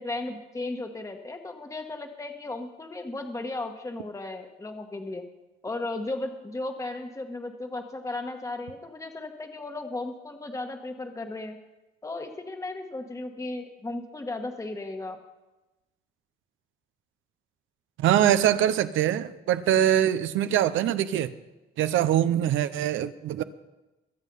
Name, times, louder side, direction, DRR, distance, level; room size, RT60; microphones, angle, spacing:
voice 1, 0.0-5.3 5.6-11.6 12.0-15.2, left 2 dB, 15° left, 4 dB, 1.3 m, -35 dB
voice 2, 18.0-21.3 21.8-23.4, right 11 dB, 85° right, 13 dB, 0.7 m, -23 dB
22.0 x 7.4 x 5.5 m, 1.1 s
cardioid pair, 90°, 20 cm